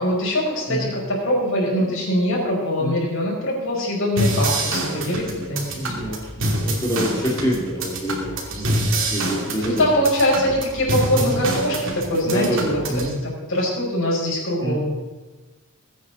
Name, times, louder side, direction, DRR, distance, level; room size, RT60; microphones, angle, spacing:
voice 1, 0.0-5.8 9.6-12.8 13.5-14.8, equal, 60° left, -3 dB, 5.5 m, -22 dB
sound 1, 4.2-13.1, right 1 dB, 60° right, 2.7 m, -26 dB
voice 2, 5.7-8.8 9.1-9.9 11.1-11.4 12.2-13.2 14.6-14.8, equal, 15° left, -3 dB, 2.7 m, -26 dB
21.0 x 9.2 x 4.1 m, 1.2 s
head